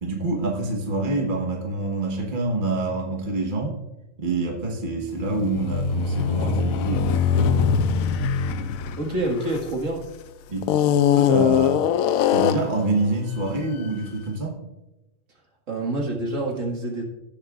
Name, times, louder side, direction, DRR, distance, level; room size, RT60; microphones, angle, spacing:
voice 1, 0.0-3.8 4.2-7.6 10.5-10.7 11.1-11.9 12.3-14.6, right 2 dB, 35° right, 0 dB, 1.5 m, -26 dB
sound 1, 5.2-10.0 10.6-12.8, left 7 dB, 75° left, 1.0 m, -22 dB
voice 2, 9.0-10.0 15.7-17.0, right 1 dB, 60° right, -1 dB, 2.2 m, -27 dB
17.0 x 7.2 x 2.4 m, 0.99 s
omnidirectional pair, 1.5 m